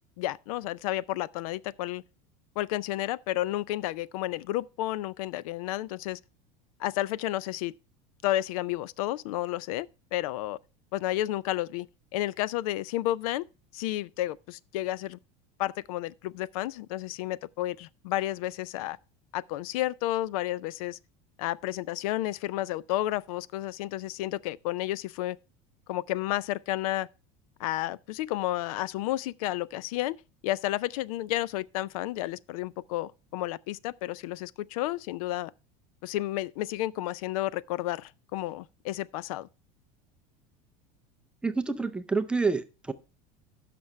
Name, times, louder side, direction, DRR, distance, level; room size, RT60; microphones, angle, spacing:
voice 1, 0.2-2.0 2.6-6.2 6.8-7.7 8.2-10.6 10.9-11.9 12.1-13.5 13.7-15.2 15.6-19.0 19.3-21.0 21.4-25.4 25.9-27.1 27.6-30.2 30.4-35.5 36.0-39.5, left 15 dB, 85° left, 0.5 m, -31 dB
voice 2, 41.4-42.9, right 4 dB, 5° right, 0.5 m, -28 dB
15.0 x 6.1 x 3.2 m
cardioid pair, 165°, 18 cm